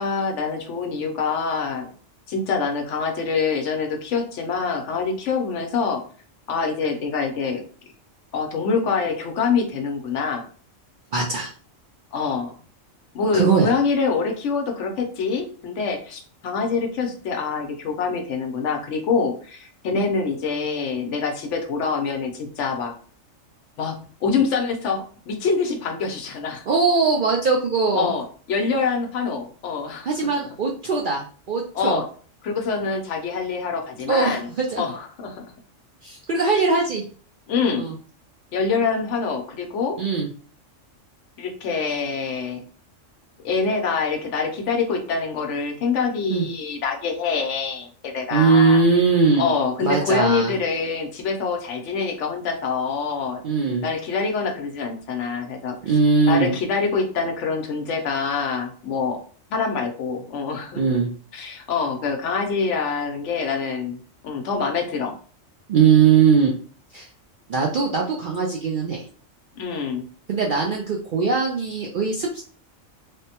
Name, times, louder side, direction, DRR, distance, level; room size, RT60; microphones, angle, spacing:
voice 1, 0.0-1.9 2.3-6.0 6.5-7.6 8.3-10.4 12.1-12.5 13.1-22.9 23.8-26.6 27.9-30.1 31.7-32.1 32.4-34.5 34.8-35.4 37.5-37.9 38.5-40.0 41.4-42.6 43.4-48.8 49.4-53.4 53.8-55.8 56.3-59.2 59.5-61.0 61.3-64.0 64.2-65.2 69.5-70.0, left 5 dB, 70° left, 4 dB, 0.9 m, -25 dB
voice 2, 11.1-11.5 13.3-13.8 26.7-28.1 30.1-32.0 34.1-34.8 36.0-37.0 37.8-37.9 40.0-40.3 46.3-46.5 48.3-49.5 49.8-50.5 53.4-53.8 55.8-56.5 60.8-61.1 65.7-66.6 66.9-67.1 67.5-69.0 70.3-72.4, right 5 dB, 65° right, -1 dB, 0.5 m, -20 dB
3.4 x 2.1 x 2.8 m, 0.41 s
omnidirectional pair, 1.3 m